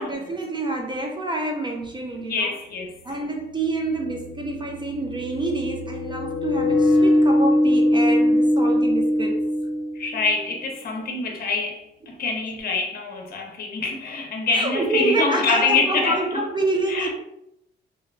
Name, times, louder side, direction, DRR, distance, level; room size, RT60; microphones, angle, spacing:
voice 1, 0.0-2.5 3.0-9.4 14.5-17.1, right 2 dB, 25° right, 0.5 m, -27 dB
sound 1, 1.9-2.0 3.4-10.3, left 1 dB, 85° left, 0.5 m, -22 dB
voice 2, 2.2-2.9 9.9-16.4 16.9-17.1, left 4 dB, 50° left, 0.8 m, -25 dB
2.9 x 2.7 x 2.3 m
cardioid pair, 90°, 20 cm